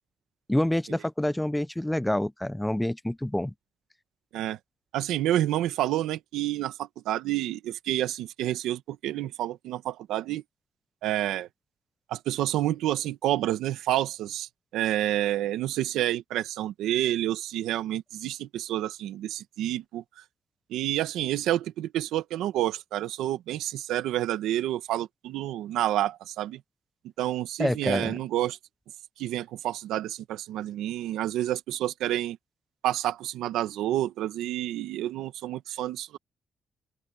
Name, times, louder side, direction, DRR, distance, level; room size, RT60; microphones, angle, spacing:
voice 1, 0.5-3.5 27.6-28.2, left 1 dB, 5° left, 0.8 m, -27 dB
voice 2, 4.9-10.4 11.0-11.5 12.1-20.0 20.7-26.6 27.2-28.6 29.2-32.4 32.8-36.2, right 13 dB, 90° right, 1.6 m, -29 dB
open air
cardioid pair, 90°, 0 cm